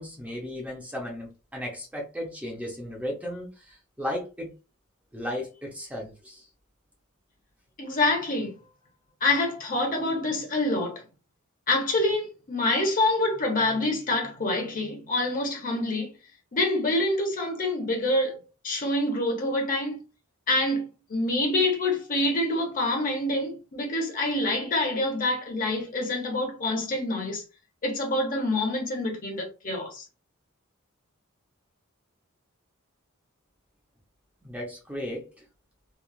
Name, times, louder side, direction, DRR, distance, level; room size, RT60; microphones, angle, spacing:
voice 1, 0.0-4.5 5.1-6.4 34.4-35.2, left 1 dB, 5° right, 0.6 m, -35 dB
voice 2, 7.8-8.5 9.2-11.0 11.7-16.1 16.5-20.0 20.5-20.8 21.1-27.4 27.8-30.0, left 2 dB, 40° left, 0.9 m, -26 dB
3.0 x 2.4 x 2.3 m
head